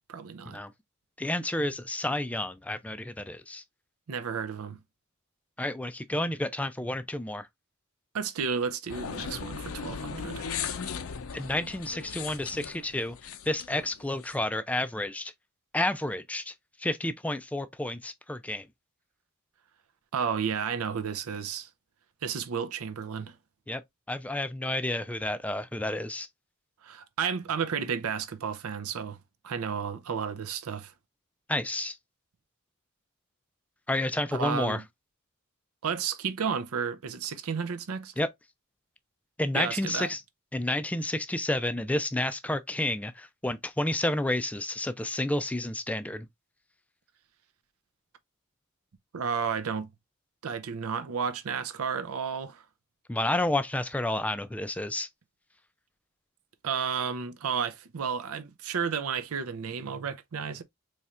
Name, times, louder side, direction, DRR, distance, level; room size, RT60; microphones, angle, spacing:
voice 1, 0.1-0.6 4.1-4.8 8.1-10.5 20.1-21.7 22.2-23.3 26.8-29.2 29.4-30.9 34.3-34.8 35.8-38.1 39.5-40.1 49.1-49.9 50.4-52.6 56.6-60.6, right 6 dB, 85° right, 0.5 m, -32 dB
voice 2, 1.2-3.6 5.6-7.5 11.3-15.3 15.7-16.5 16.8-18.7 23.7-23.8 24.1-26.3 31.5-32.0 33.9-34.8 38.2-38.3 39.4-40.2 40.5-46.3 53.1-55.1, left 1 dB, 5° left, 0.3 m, -30 dB
sound 1, 8.9-14.3, left 6 dB, 75° left, 0.5 m, -38 dB
4.2 x 3.1 x 2.4 m
head